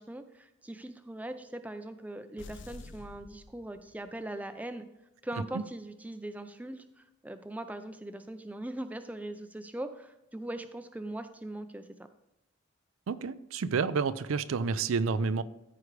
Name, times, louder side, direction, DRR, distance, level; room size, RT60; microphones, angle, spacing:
voice 1, 0.0-4.8 5.2-11.9, right 1 dB, 5° right, 0.4 m, -40 dB
sound 1, 2.4-4.2, left 2 dB, 60° left, 0.5 m, -49 dB
voice 2, 13.1-15.4, right 5 dB, 85° right, 0.4 m, -29 dB
14.0 x 4.8 x 3.2 m
head